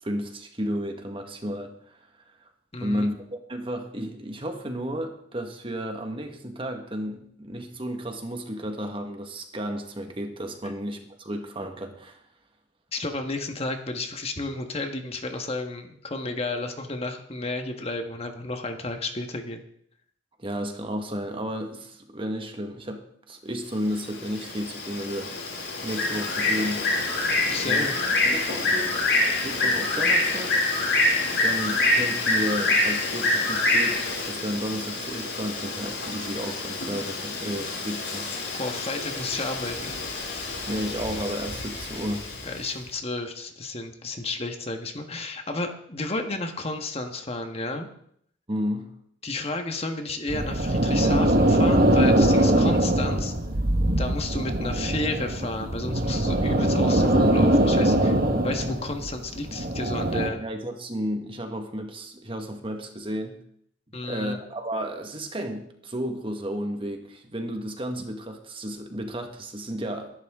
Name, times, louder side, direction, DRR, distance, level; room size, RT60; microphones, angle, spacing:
voice 1, 0.0-2.0 2.8-12.2 20.4-25.3 25.8-26.8 27.7-29.0 29.4-30.6 31.4-38.6 40.7-42.3 48.5-48.9 60.4-63.4 64.0-70.1, equal, 30° right, 5 dB, 1.6 m, -32 dB
voice 2, 2.7-3.1 12.9-19.6 27.4-28.0 38.5-40.0 42.4-47.9 49.2-53.3 54.0-58.2 58.4-60.4 63.9-64.4, left 2 dB, 35° left, 5 dB, 1.5 m, -32 dB
Bird, 23.9-42.6, left 2 dB, 80° left, 5.8 m, -26 dB
sound 1, 50.3-60.3, right 1 dB, 50° right, 1.5 m, -22 dB
21.5 x 11.5 x 3.7 m, 0.67 s
head